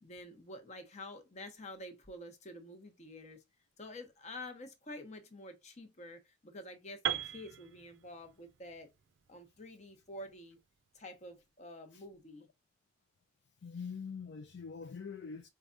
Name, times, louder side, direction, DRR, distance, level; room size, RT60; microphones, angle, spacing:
voice 1, 0.0-3.4 3.8-8.9 9.3-10.6 10.9-12.5, left 1 dB, 40° left, 0.8 m, -48 dB
Piano, 7.0-11.0, right 10 dB, 85° right, 0.4 m, -41 dB
voice 2, 13.6-15.5, left 5 dB, 65° left, 0.4 m, -44 dB
4.7 x 2.2 x 2.6 m
head